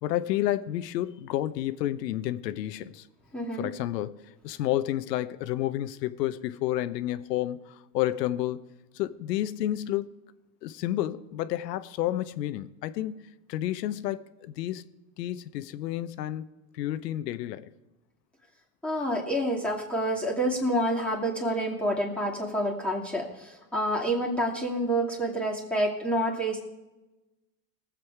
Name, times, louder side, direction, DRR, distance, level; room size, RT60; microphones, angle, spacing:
voice 1, 0.0-3.1 3.6-8.6 8.9-10.1 10.6-14.9 15.2-16.4 16.7-17.6, left 13 dB, 80° left, 0.9 m, -30 dB
voice 2, 3.3-3.7 18.8-26.6, equal, ahead, 2.3 m, -28 dB
19.5 x 7.7 x 4.7 m
supercardioid pair, 110°, 49 cm